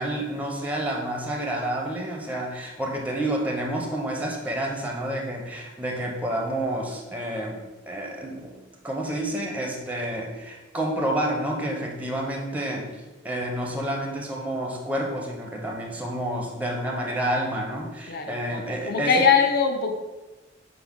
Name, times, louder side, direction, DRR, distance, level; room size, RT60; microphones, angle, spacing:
voice 1, 0.0-19.1, right 1 dB, 10° right, 0 dB, 0.5 m, -29 dB
voice 2, 18.1-19.9, left 6 dB, 50° left, 4 dB, 0.5 m, -22 dB
5.8 x 2.0 x 3.5 m, 1.2 s
head